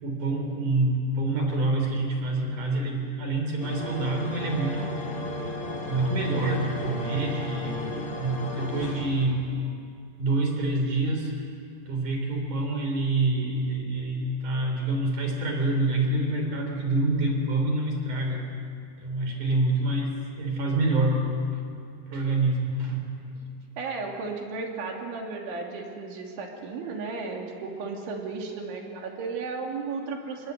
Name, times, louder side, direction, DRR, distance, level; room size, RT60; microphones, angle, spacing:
voice 1, 0.0-5.2 5.9-9.5 10.2-11.5 11.9-18.6 19.0-21.4 22.1-23.4, right 2 dB, 45° right, 3 dB, 4.8 m, -27 dB
sound 1, 3.6-9.6, left 1 dB, 35° left, 1.9 m, -34 dB
voice 2, 23.8-30.5, right 4 dB, 80° right, 1 dB, 5.3 m, -34 dB
27.5 x 22.0 x 8.3 m, 2.4 s
omnidirectional pair, 5.4 m